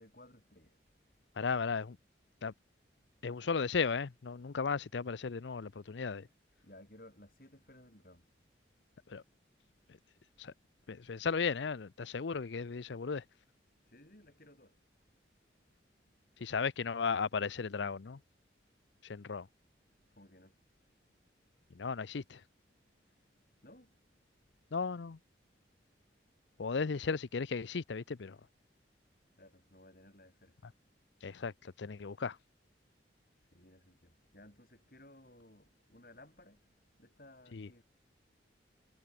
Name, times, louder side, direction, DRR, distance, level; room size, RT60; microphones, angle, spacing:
voice 1, 0.0-1.4 3.0-3.3 6.6-9.2 9.6-10.1 13.7-16.6 18.9-19.2 19.9-21.9 22.7-24.8 25.4-25.6 25.9-27.1 29.3-31.1 33.3-37.8, left 1 dB, 50° left, 7.9 m, -61 dB
voice 2, 1.4-2.0 2.4-2.5 3.2-6.3 9.1-9.2 9.9-10.0 10.4-10.5 10.9-13.2 16.4-18.2 19.0-19.5 21.7-22.4 24.7-25.2 26.6-28.4 31.2-32.4 37.5-37.7, left 5 dB, 75° left, 0.6 m, -35 dB
head